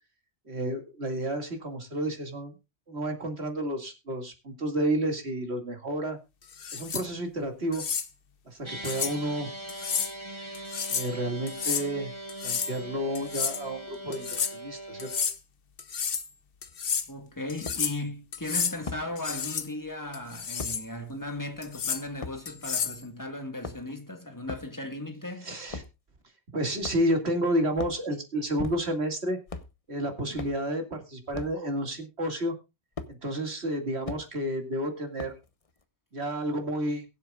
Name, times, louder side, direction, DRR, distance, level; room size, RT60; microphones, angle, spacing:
voice 1, 0.5-2.5 2.9-6.2 6.7-7.9 8.5-9.5 10.9-12.1 12.4-15.1 25.4-25.8 26.5-29.4 29.9-32.5 33.1-35.3 36.1-37.0, right 1 dB, 75° right, 2.6 m, -30 dB
sound 1, 6.5-7.1 7.7-8.1 8.8-9.1 9.7-10.1 10.5-11.1 11.5-11.9 12.3-12.8 13.1-13.6 14.1-14.5 15.0-15.4 15.8-16.3 16.6-17.1 17.5-18.0 18.3-18.8 19.2-19.7 20.1-20.8 21.6-22.0 22.5-23.0, left 6 dB, 60° left, 1.1 m, -31 dB
sound 2, 8.6-15.3, right 1 dB, 25° right, 1.9 m, -41 dB
sound 3, 16.7-16.8 17.7-17.8 18.9-19.1 20.6-20.8 22.2-22.4 23.5-24.0 24.5-24.7 25.7-26.0 26.8-27.2 27.7-28.0 28.6-29.1 29.5-29.7 30.4-30.6 31.3-31.6 33.0-33.1 34.0-34.2 35.2-35.5, left 4 dB, 35° left, 0.9 m, -38 dB
voice 2, 17.1-25.5, left 1 dB, 15° left, 1.8 m, -37 dB
22.0 x 7.7 x 2.4 m
omnidirectional pair, 1.1 m